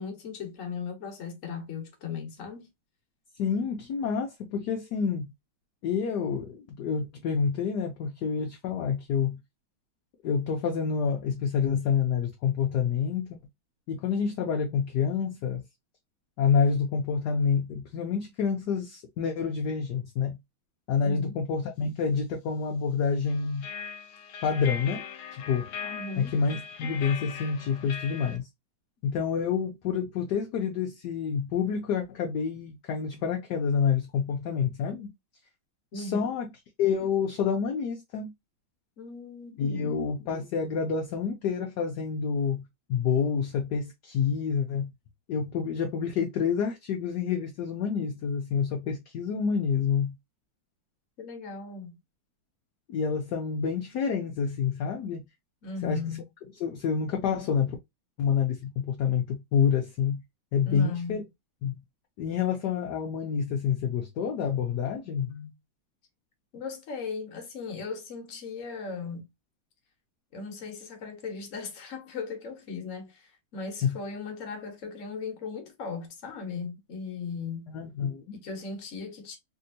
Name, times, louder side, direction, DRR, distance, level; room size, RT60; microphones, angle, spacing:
voice 1, 0.0-2.7 21.0-21.3 25.9-26.3 35.9-36.3 39.0-39.9 51.2-52.0 55.6-56.2 60.7-61.2 65.2-65.5 66.5-69.3 70.3-73.2 73.5-77.7 78.3-79.4, left 5 dB, 45° left, 1.1 m, -37 dB
voice 2, 3.4-5.3 5.8-9.4 10.2-13.4 13.9-15.6 16.4-20.4 20.9-23.7 24.4-25.0 25.3-25.7 26.2-28.5 29.0-35.1 35.9-36.5 36.8-38.3 39.6-42.6 42.9-44.9 45.3-50.1 52.9-55.3 55.8-56.2 56.6-57.8 58.2-60.2 60.5-61.2 61.6-61.8 62.2-65.3 73.8-74.0 77.7-78.4, left 6 dB, 70° left, 1.0 m, -28 dB
sound 1, 23.3-28.4, left 6 dB, 85° left, 1.4 m, -40 dB
3.4 x 2.7 x 2.6 m
omnidirectional pair, 2.3 m